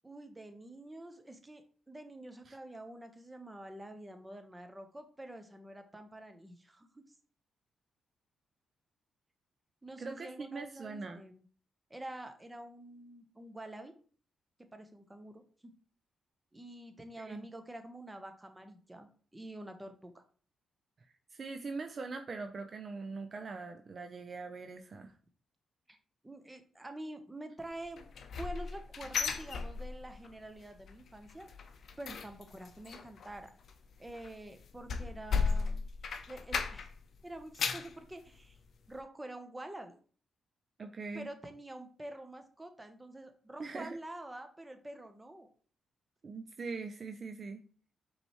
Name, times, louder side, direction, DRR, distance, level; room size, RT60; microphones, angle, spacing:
voice 1, 0.0-7.1 9.8-11.4 11.9-13.9 14.6-15.7 16.5-20.2 25.9-26.0 26.2-28.1 28.4-31.5 32.0-33.5 34.0-35.9 36.3-36.9 37.2-38.6 38.9-40.0 41.1-45.5, right 1 dB, 20° right, 7 dB, 0.9 m, -47 dB
voice 2, 10.0-11.2 17.2-17.5 21.3-25.1 40.8-41.3 43.6-44.0 46.2-47.6, right 4 dB, 50° right, 6 dB, 0.5 m, -42 dB
sound 1, 28.0-30.3 30.6-30.9 31.2-37.0 37.3-38.0 38.4-38.5 39.0-39.1, left 5 dB, 65° left, 0.5 m, -36 dB
5.1 x 3.3 x 3.0 m, 0.43 s
supercardioid pair, 55°, 0 cm